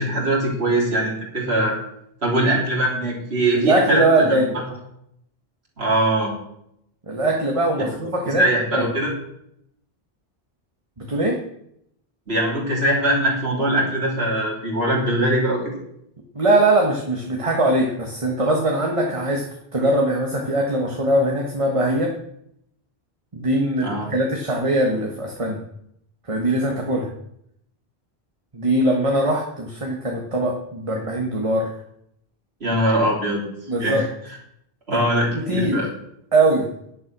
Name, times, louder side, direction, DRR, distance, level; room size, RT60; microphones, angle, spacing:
voice 1, 0.0-1.8 2.2-4.3 5.8-6.3 8.4-9.1 12.3-15.6 23.8-24.1 32.6-33.4 33.8-34.1 34.9-35.9, right 1 dB, 90° right, -2 dB, 3.6 m, -21 dB
voice 2, 3.6-4.5 7.1-8.5 8.7-8.9 11.0-11.4 16.3-19.4 19.7-22.1 23.3-25.6 26.3-27.1 28.5-31.7 33.7-34.1 35.3-35.8 36.3-36.7, right 1 dB, 30° right, 1 dB, 1.6 m, -21 dB
11.0 x 10.0 x 6.1 m, 0.74 s
omnidirectional pair, 1.0 m